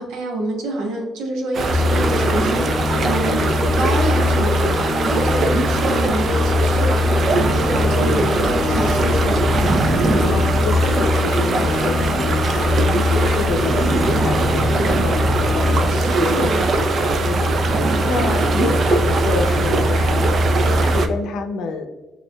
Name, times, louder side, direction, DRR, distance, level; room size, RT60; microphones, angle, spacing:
voice 1, 0.0-7.1 7.3-9.7 10.1-10.4 15.9-16.6, right 1 dB, 85° right, 1 dB, 1.0 m, -27 dB
sound 1, 1.5-21.1, right 2 dB, 50° right, 0.4 m, -20 dB
sound 2, 1.7-15.8, left 3 dB, 15° left, 0.8 m, -22 dB
voice 2, 10.1-21.9, left 4 dB, 75° left, 6 dB, 0.6 m, -28 dB
7.0 x 2.4 x 2.2 m, 1.2 s
cardioid pair, 100°, 0 cm